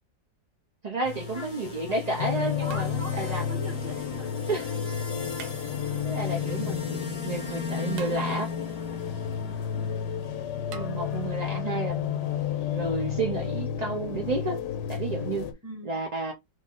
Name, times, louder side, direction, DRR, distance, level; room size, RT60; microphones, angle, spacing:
voice 1, 0.8-3.4 4.5-4.7 5.9-8.4 10.7-14.6 14.9-15.5 15.8-16.3, right 3 dB, 55° right, 0.4 m, -31 dB
sound 1, 1.0-13.6, left 3 dB, 35° left, 1.6 m, -42 dB
sound 2, 2.2-15.5, left 8 dB, 70° left, 1.4 m, -31 dB
voice 2, 2.6-4.4 4.7-4.9 6.4-6.6 6.8-7.0 8.1-8.5 9.5-9.8 15.6-16.0, equal, 10° right, 1.3 m, -42 dB
sound 3, 2.7-3.4 5.3-6.1 8.0-8.7 10.7-10.9, right 7 dB, 80° right, 1.5 m, -45 dB
4.1 x 3.1 x 3.8 m
omnidirectional pair, 2.0 m